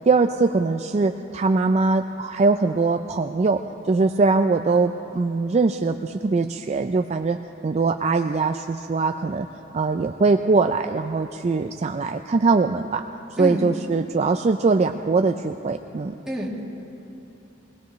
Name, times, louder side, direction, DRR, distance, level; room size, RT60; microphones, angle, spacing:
voice 1, 0.1-3.6 3.9-7.4 7.6-9.5 9.7-13.0 13.4-16.1, right 3 dB, 35° right, 6 dB, 0.4 m, -21 dB
voice 2, 13.4-13.7 16.3-16.6, equal, 5° right, -4 dB, 2.0 m, -28 dB
21.5 x 20.0 x 3.1 m, 3.0 s
head